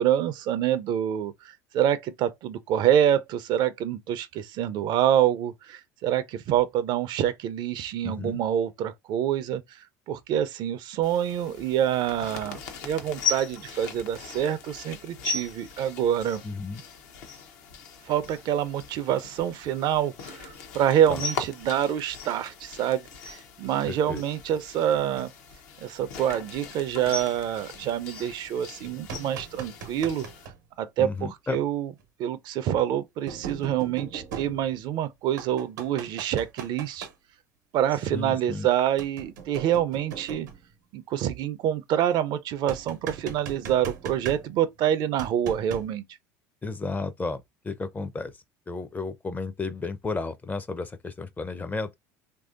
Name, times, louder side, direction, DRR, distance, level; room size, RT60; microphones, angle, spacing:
voice 1, 0.0-16.4 18.1-25.3 25.8-30.3 30.8-31.9 32.2-37.1 37.7-40.5 40.9-46.0, right 10 dB, 55° right, 0.4 m, -26 dB
voice 2, 8.0-8.4 16.4-16.8 21.1-21.2 23.9-24.2 31.0-31.6 38.1-38.7 46.6-48.3 48.7-51.9, left 3 dB, 20° left, 0.4 m, -33 dB
sound 1, 11.0-30.5, left 5 dB, 80° left, 0.7 m, -39 dB
sound 2, 28.8-30.6 32.0-32.1 33.3-35.0 35.4-37.1 39.0-40.7 42.7-44.8 45.2-45.9, right 7 dB, 85° right, 0.8 m, -39 dB
3.1 x 2.6 x 2.4 m
hypercardioid pair, 80°, 9 cm